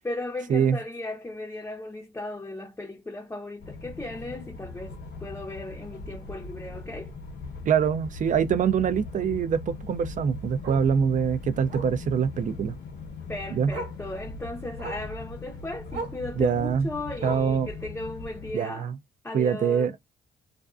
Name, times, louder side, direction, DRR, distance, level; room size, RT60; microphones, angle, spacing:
voice 1, 0.0-7.1 13.3-18.9 19.2-19.9, left 2 dB, 10° left, 0.6 m, -36 dB
sound 1, 3.6-18.5, left 4 dB, 60° left, 0.8 m, -40 dB
Bark, 4.2-4.3 4.7-4.9 5.2-5.3 5.6-5.7 7.1-7.2 9.7-9.8 10.6-10.9 11.7-12.0 13.2-13.3 13.7-14.0 14.8-15.1 15.9-16.2 17.2-17.6 18.6-18.7, right 2 dB, 60° right, 0.9 m, -37 dB
voice 2, 7.7-12.7 13.5-13.7 16.4-16.9 17.2-17.7 18.5-19.0 19.3-20.0, right 7 dB, 40° right, 0.4 m, -24 dB
2.4 x 2.2 x 2.3 m
cardioid pair, 90°, 20 cm